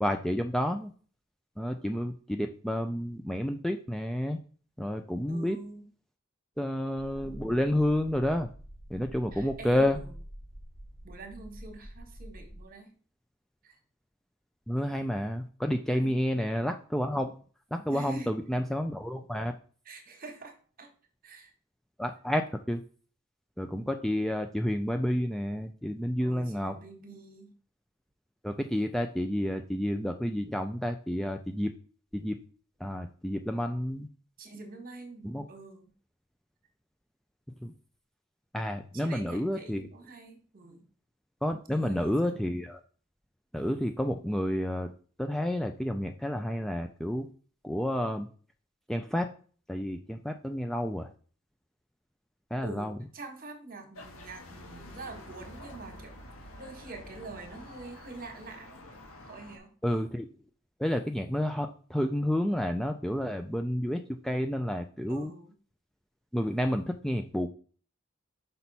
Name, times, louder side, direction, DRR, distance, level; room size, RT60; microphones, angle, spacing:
voice 1, 0.0-0.9 1.6-4.4 4.8-5.6 6.6-8.5 8.9-10.0 14.7-17.3 17.7-19.5 22.0-22.4 22.7-22.8 23.6-26.8 28.4-31.7 32.1-32.4 32.8-34.1 35.2-35.5 37.6-37.7 38.5-39.9 41.4-42.8 43.5-44.9 45.2-47.3 47.6-48.3 48.9-49.3 49.7-51.1 52.5-53.0 59.8-60.3 60.8-65.3 66.3-67.5, equal, ahead, 6 dB, 0.4 m, -30 dB
voice 2, 5.3-5.8 9.3-10.1 11.0-12.9 13.6-13.8 15.9-16.2 17.9-18.4 19.8-20.9 21.2-21.5 26.2-27.5 34.4-35.9 38.9-40.8 41.7-42.4 52.6-56.2 56.6-58.7 59.2-59.7 65.1-65.5, right 3 dB, 45° right, 5 dB, 1.4 m, -46 dB
sound 1, 7.0-12.6, equal, 35° left, 1.1 m, -47 dB
sound 2, 53.9-59.6, left 1 dB, 75° left, 1.6 m, -48 dB
6.0 x 5.3 x 4.1 m, 0.42 s
head